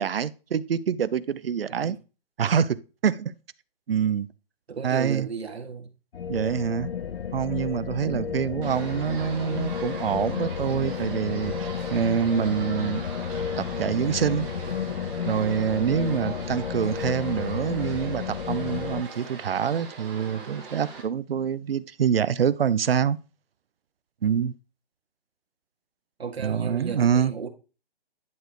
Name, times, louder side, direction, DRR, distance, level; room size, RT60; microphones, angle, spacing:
voice 1, 0.0-2.0 2.4-3.3 3.9-4.3 4.8-5.3 6.3-6.9 7.3-13.0 13.6-14.5 15.3-23.2 24.2-24.5 26.4-27.3, right 8 dB, 70° right, 0.7 m, -26 dB
voice 2, 4.7-5.9 8.0-8.4 26.2-27.5, right 5 dB, 85° right, 2.1 m, -34 dB
sound 1, 6.1-19.0, left 7 dB, 70° left, 0.7 m, -32 dB
sound 2, 8.6-21.0, right 4 dB, 10° right, 1.5 m, -41 dB
11.0 x 4.2 x 3.0 m
hypercardioid pair, 180°, 31 cm